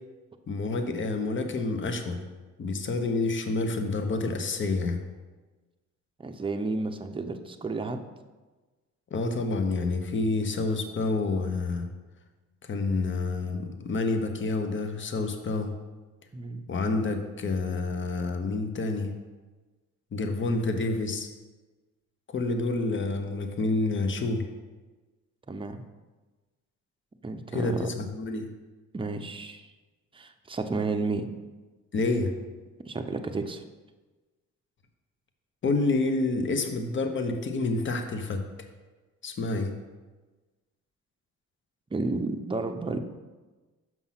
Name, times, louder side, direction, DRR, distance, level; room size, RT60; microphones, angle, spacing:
voice 1, 0.5-2.2 2.6-5.0 9.1-11.9 12.7-15.7 16.7-19.1 20.1-21.3 22.3-24.4 27.5-28.5 31.9-32.3 35.6-38.4 39.2-39.7, left 3 dB, 40° left, 6 dB, 1.0 m, -28 dB
voice 2, 6.2-8.0 16.3-16.7 25.5-25.8 27.2-27.9 28.9-29.7 30.1-31.3 32.8-33.6 41.9-43.0, right 3 dB, 15° right, 6 dB, 0.6 m, -32 dB
6.2 x 5.5 x 5.8 m, 1.3 s
cardioid pair, 90°, 30 cm